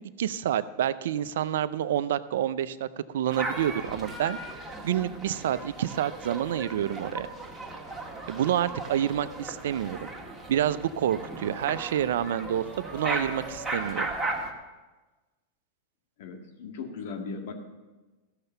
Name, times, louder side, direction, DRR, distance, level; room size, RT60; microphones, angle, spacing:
voice 1, 0.0-4.4 4.8-7.3 8.3-10.1 10.5-14.1, right 10 dB, 75° right, 14 dB, 0.5 m, -28 dB
sound 1, 3.3-14.5, right 2 dB, 10° right, 1.9 m, -36 dB
voice 2, 16.2-17.5, left 4 dB, 65° left, 5 dB, 1.9 m, -37 dB
14.5 x 6.6 x 6.9 m, 1.2 s
hypercardioid pair, 115°, 0 cm